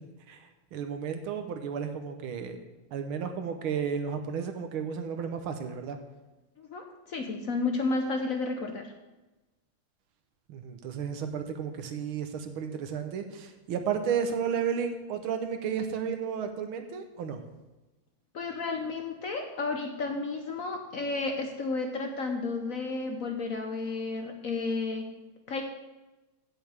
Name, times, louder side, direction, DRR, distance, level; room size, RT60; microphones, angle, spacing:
voice 1, 0.3-2.6 2.9-6.0 10.5-17.4, right 7 dB, 85° right, 6 dB, 1.8 m, -33 dB
voice 2, 6.6-8.9 18.3-25.1 25.5-25.6, left 3 dB, 55° left, 4 dB, 1.0 m, -32 dB
16.0 x 7.0 x 3.5 m, 1.1 s
omnidirectional pair, 2.2 m